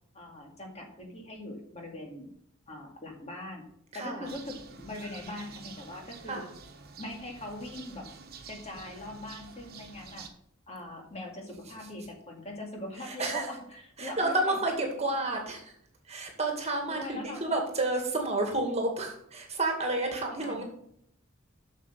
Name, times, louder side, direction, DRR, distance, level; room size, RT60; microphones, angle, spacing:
voice 1, 0.1-2.3 2.7-3.6 3.9-6.4 7.0-8.1 8.5-10.3 10.7-15.2 16.9-17.6 20.3-20.6, left 1 dB, 30° left, 1 dB, 2.2 m, -42 dB
voice 2, 3.9-4.3 6.3-6.5 13.0-13.5 14.0-15.7 16.1-20.6, right 2 dB, 35° right, 2 dB, 2.1 m, -30 dB
sound 1, 4.3-10.3, right 5 dB, 50° right, 1.3 m, -48 dB
8.4 x 6.6 x 6.7 m, 0.69 s
head